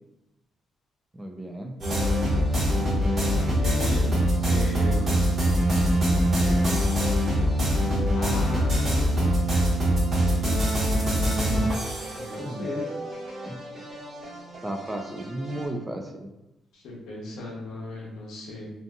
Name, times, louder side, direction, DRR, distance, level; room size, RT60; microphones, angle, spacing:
voice 1, 1.1-1.8 12.4-12.7 13.5-13.6 14.6-16.3, right 1 dB, 15° right, 4 dB, 0.3 m, -34 dB
sound 1, 1.8-15.7, equal, 50° right, 1.1 m, -24 dB
voice 2, 3.3-4.1 4.4-5.2 8.1-9.3 11.1-11.3 12.1-12.9 16.7-18.7, left 2 dB, 80° left, -3 dB, 0.7 m, -36 dB
2.6 x 2.5 x 2.3 m, 0.96 s
cardioid pair, 90°, 0 cm